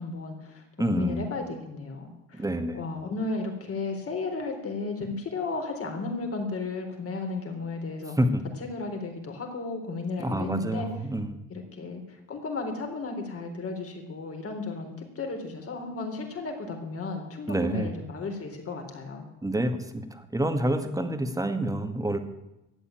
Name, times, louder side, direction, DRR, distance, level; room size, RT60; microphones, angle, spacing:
voice 1, 0.0-0.6 0.9-2.5 2.7-8.2 8.6-10.9 11.5-19.3, left 3 dB, 50° left, 3 dB, 4.0 m, -34 dB
voice 2, 0.8-1.2 2.4-2.8 8.2-8.4 10.2-11.4 17.5-17.9 19.4-22.2, right 1 dB, 10° right, 7 dB, 1.9 m, -28 dB
13.5 x 8.7 x 9.2 m, 0.95 s
cardioid pair, 90°, 30 cm